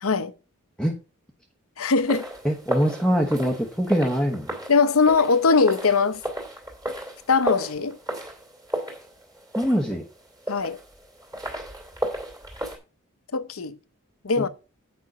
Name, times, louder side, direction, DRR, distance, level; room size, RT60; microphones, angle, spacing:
voice 1, 0.0-0.3 1.8-2.2 4.7-6.2 7.3-8.0 10.5-10.8 13.3-13.8 14.2-14.5, left 4 dB, 75° left, 0.8 m, -21 dB
sound 1, 2.0-12.8, right 1 dB, 15° right, 2.6 m, -34 dB
voice 2, 2.4-4.5 9.5-10.0 14.4-14.5, equal, 5° left, 1.0 m, -23 dB
9.1 x 5.3 x 6.0 m
head